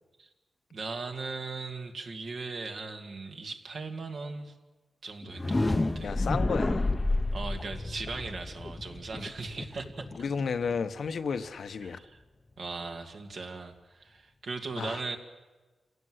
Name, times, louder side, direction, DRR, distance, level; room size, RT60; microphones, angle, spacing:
voice 1, 0.7-4.5 5.0-6.2 7.3-10.1 11.8-12.2 12.6-15.2, right 4 dB, 65° right, 2.5 m, -38 dB
sound 1, 5.2-11.1, left 2 dB, 20° left, 0.8 m, -30 dB
voice 2, 6.0-6.9 10.2-12.0 14.8-15.0, left 5 dB, 70° left, 1.0 m, -32 dB
28.0 x 17.5 x 8.0 m
wide cardioid pair, 115°, 0 cm